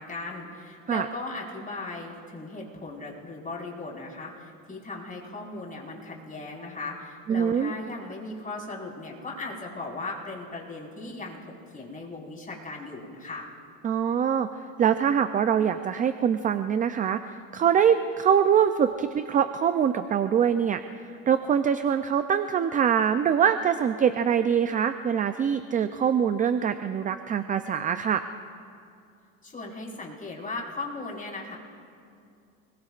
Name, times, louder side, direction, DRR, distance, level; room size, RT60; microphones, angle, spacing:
voice 1, 0.0-13.5 29.4-31.6, left 3 dB, 20° left, -3 dB, 4.6 m, -37 dB
voice 2, 7.3-7.7 13.8-14.5 14.8-20.8 21.3-28.2, right 8 dB, 20° right, 10 dB, 0.4 m, -24 dB
28.0 x 21.5 x 2.5 m, 2.5 s
supercardioid pair, 105°, 44 cm